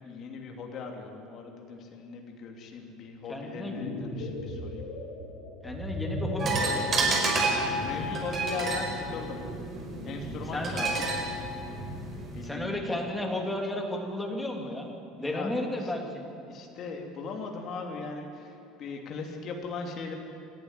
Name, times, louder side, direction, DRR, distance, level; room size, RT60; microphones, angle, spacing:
voice 1, 0.0-4.8 7.7-9.4 10.0-11.1 12.3-13.0 15.2-15.9 16.5-20.2, left 4 dB, 40° left, 2 dB, 3.0 m, -39 dB
voice 2, 3.3-3.8 5.6-7.2 10.5-10.8 12.4-16.0, left 1 dB, 5° left, 1 dB, 2.4 m, -33 dB
sound 1, 3.5-8.2, left 2 dB, 75° left, 5.2 m, -36 dB
sound 2, 6.4-12.5, right 2 dB, 25° right, 4.5 m, -30 dB
28.0 x 12.0 x 9.8 m, 2.7 s
cardioid pair, 155°, 0 cm